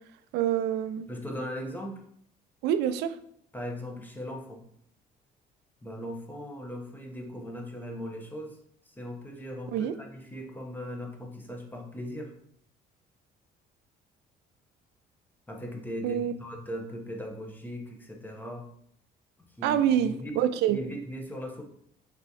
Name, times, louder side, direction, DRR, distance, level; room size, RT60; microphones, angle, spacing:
voice 1, 0.3-1.1 2.6-3.1 9.7-9.9 16.0-16.3 19.6-20.8, right 10 dB, 85° right, 12 dB, 0.4 m, -26 dB
voice 2, 1.1-2.0 3.5-4.6 5.8-8.6 8.9-12.3 15.5-18.7 19.6-20.4 20.7-21.6, equal, 10° left, 1 dB, 0.9 m, -38 dB
3.5 x 3.1 x 4.1 m, 0.68 s
cardioid pair, 110°, 17 cm